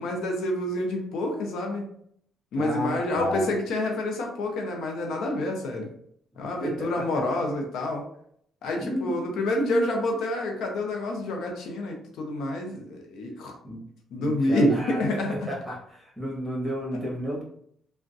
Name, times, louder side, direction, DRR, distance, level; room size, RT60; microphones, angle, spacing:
voice 1, 0.0-1.9 2.5-5.9 6.4-8.1 8.6-13.5 14.1-15.4, left 1 dB, 80° left, 2 dB, 0.6 m, -28 dB
voice 2, 2.5-3.5 6.6-7.2 8.8-9.1 13.6-13.9 14.2-15.0 15.5-17.4, equal, ahead, -4 dB, 1.4 m, -32 dB
3.4 x 2.1 x 2.6 m, 0.66 s
cardioid pair, 90°, 0 cm